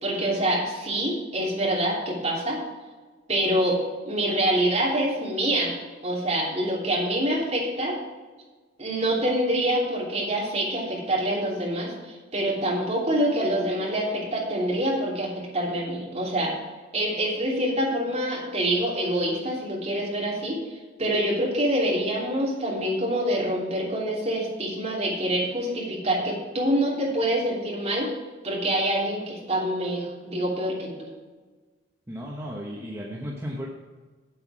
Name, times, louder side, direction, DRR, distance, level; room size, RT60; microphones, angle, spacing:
voice 1, 0.0-2.6 3.3-3.8 4.0-5.7 6.0-8.0 8.8-16.5 16.9-28.1 28.4-31.1, right 1 dB, 35° right, -4 dB, 3.1 m, -26 dB
voice 2, 32.1-33.7, equal, 15° right, -4 dB, 1.1 m, -34 dB
8.2 x 8.0 x 4.8 m, 1.3 s
head